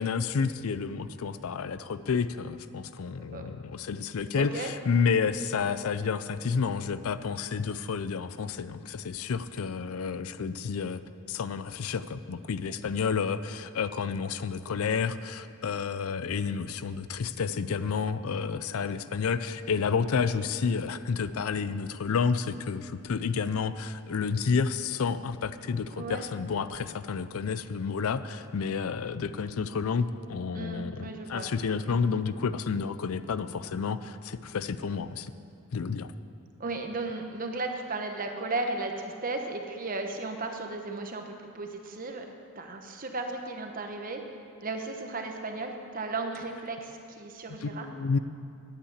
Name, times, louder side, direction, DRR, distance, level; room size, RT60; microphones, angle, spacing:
voice 1, 0.0-11.0 11.3-35.3 35.7-36.1 47.5-48.2, left 5 dB, 70° left, 13 dB, 0.4 m, -30 dB
voice 2, 4.4-4.7 26.0-26.2 30.5-31.5 36.6-42.2 42.5-44.2 44.6-47.9, right 3 dB, 40° right, 4 dB, 1.0 m, -35 dB
9.9 x 8.6 x 8.1 m, 2.5 s
head